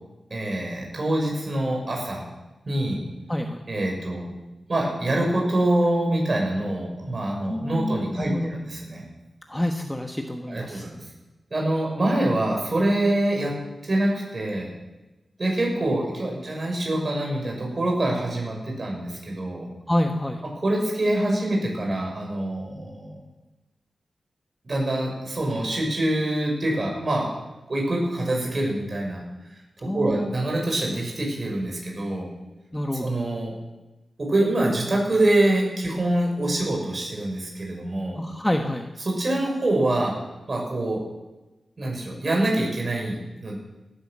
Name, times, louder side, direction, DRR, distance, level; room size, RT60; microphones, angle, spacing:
voice 1, 0.3-2.3 2.7-3.0 3.7-4.3 4.7-9.0 10.5-11.0 11.5-13.6 13.8-14.7 15.4-19.7 20.6-23.2 24.6-27.3 27.7-29.2 29.8-32.3 33.0-33.5 34.2-38.2 39.0-40.2 40.5-41.0 41.8-43.6, right 1 dB, 45° right, -1 dB, 6.4 m, -25 dB
voice 2, 3.3-3.6 7.5-8.5 9.5-10.8 19.9-20.4 29.8-30.3 32.7-33.1 38.2-38.9, left 1 dB, 10° left, 4 dB, 1.2 m, -27 dB
17.0 x 10.5 x 7.5 m, 1.1 s
cardioid pair, 70°, 0 cm